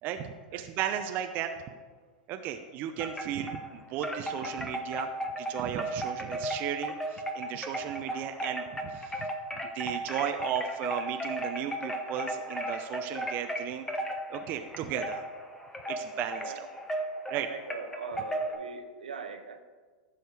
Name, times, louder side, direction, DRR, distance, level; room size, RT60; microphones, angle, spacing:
voice 1, 0.0-1.5 2.3-5.1 5.4-9.3 9.7-13.8 14.3-15.2 15.9-16.7 17.3-17.5, right 10 dB, 45° right, 6 dB, 0.7 m, -35 dB
Wind chime, 3.0-3.7 4.0-18.6, right 1 dB, 10° left, 1.2 m, -35 dB
voice 2, 17.5-19.6, right 5 dB, 75° right, 6 dB, 1.0 m, -41 dB
15.0 x 6.4 x 3.5 m, 1.5 s
figure-of-eight pair, 90°, 5 cm